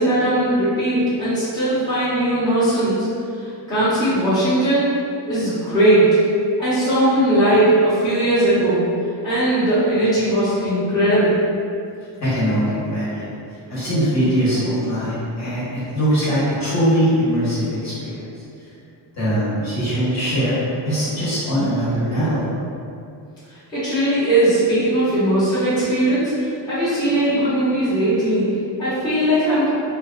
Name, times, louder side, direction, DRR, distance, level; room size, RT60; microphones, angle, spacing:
voice 1, 0.0-3.1 3.4-4.9 5.3-6.2 6.6-8.8 9.2-11.4 23.5-29.7, right 1 dB, 10° left, -14 dB, 0.9 m, -19 dB
voice 2, 12.2-13.3 13.7-18.2 19.2-20.6 20.8-22.4, equal, 35° left, -11 dB, 1.1 m, -21 dB
2.6 x 2.3 x 2.4 m, 2.5 s
cardioid pair, 115°, 46 cm